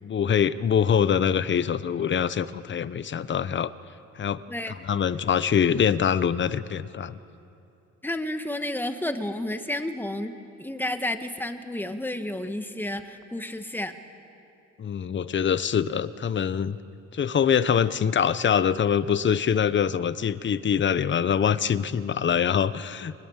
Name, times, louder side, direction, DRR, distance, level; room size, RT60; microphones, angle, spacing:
voice 1, 0.0-3.7 4.2-7.2 14.8-16.8 17.1-23.1, left 8 dB, 40° left, 15 dB, 0.8 m, -24 dB
voice 2, 8.0-10.3 10.6-13.9, left 1 dB, 5° left, 7 dB, 1.6 m, -31 dB
24.5 x 21.0 x 7.4 m, 2.7 s
cardioid pair, 90°, 30 cm